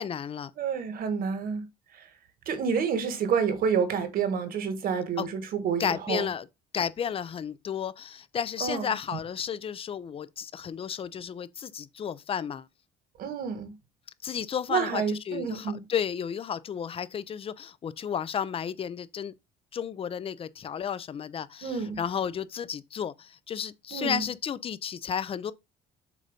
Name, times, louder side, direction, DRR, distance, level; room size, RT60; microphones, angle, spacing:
voice 1, 0.0-0.5 5.2-5.3 5.8-6.5 6.7-12.7 14.2-19.3 19.7-25.5, left 8 dB, 35° left, 0.5 m, -33 dB
voice 2, 0.6-1.6 2.5-6.3 8.6-8.9 13.2-13.7 14.7-15.8 21.6-22.0 23.9-24.2, right 6 dB, 60° right, 1.4 m, -29 dB
7.5 x 2.6 x 5.2 m
cardioid pair, 110°, 17 cm